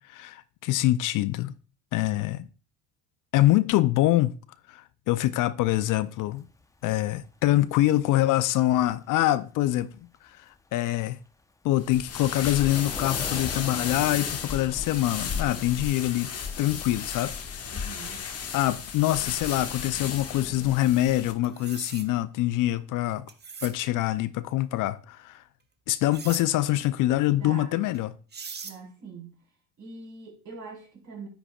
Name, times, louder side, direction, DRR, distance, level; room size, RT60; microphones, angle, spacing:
voice 1, 0.1-1.5 1.9-2.5 3.3-4.4 4.7-6.5 6.8-9.9 10.4-11.2 11.6-16.3 16.6-17.9 18.5-23.3 23.6-25.4 25.9-28.1, left 15 dB, 55° left, 0.6 m, -25 dB
Thunder / Rain, 5.8-21.3, left 2 dB, 10° left, 0.9 m, -47 dB
sound 1, 11.8-21.3, left 7 dB, 40° left, 1.4 m, -34 dB
voice 2, 17.7-18.2 27.3-27.8 28.6-29.3 29.8-31.3, right 4 dB, 50° right, 4.2 m, -42 dB
sound 2, 21.4-22.1 23.3-23.7 26.1-26.4 27.9-28.0 28.3-28.8, right 5 dB, 25° right, 1.0 m, -40 dB
9.9 x 8.6 x 2.4 m
hypercardioid pair, 75°, 37 cm